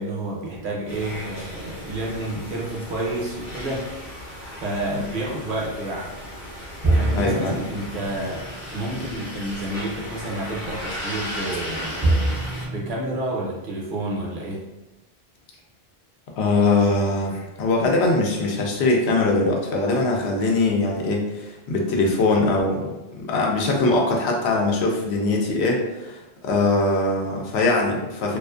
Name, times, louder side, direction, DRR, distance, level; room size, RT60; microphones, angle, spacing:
voice 1, 0.0-3.9 4.6-6.1 6.9-8.5 8.7-12.2 12.6-14.6, right 1 dB, 60° right, -3 dB, 0.8 m, -29 dB
sound 1, 0.9-12.7, equal, 55° left, 0.8 m, -36 dB
sound 2, 6.8-9.8 10.1-10.2 12.0-12.9, right 2 dB, 30° right, 0.4 m, -25 dB
voice 2, 7.1-7.5 16.3-23.0 23.3-28.4, left 2 dB, 85° left, 0 dB, 0.8 m, -22 dB
2.4 x 2.4 x 2.3 m, 1.0 s
omnidirectional pair, 1.1 m